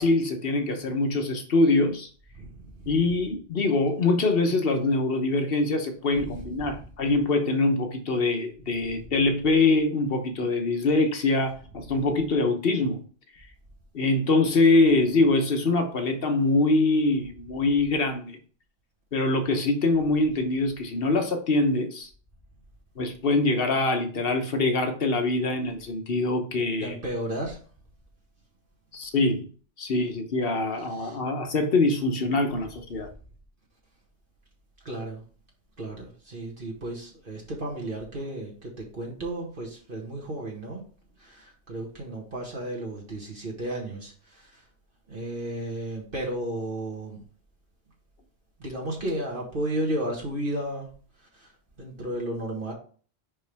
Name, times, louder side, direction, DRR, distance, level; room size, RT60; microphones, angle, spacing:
voice 1, 0.0-2.1 2.9-13.0 13.9-18.4 19.1-22.1 23.0-27.0 28.9-29.5 29.8-33.1, left 2 dB, 55° left, 6 dB, 1.1 m, -24 dB
voice 2, 2.3-2.9 6.2-6.8 8.8-9.0 26.8-27.6 30.9-31.2 34.9-35.2 35.8-40.8 41.2-44.7 45.1-47.2 48.6-50.9 51.2-51.5 51.8-52.7, right 1 dB, 45° right, -2 dB, 1.7 m, -33 dB
5.5 x 5.4 x 3.4 m, 0.42 s
omnidirectional pair, 1.2 m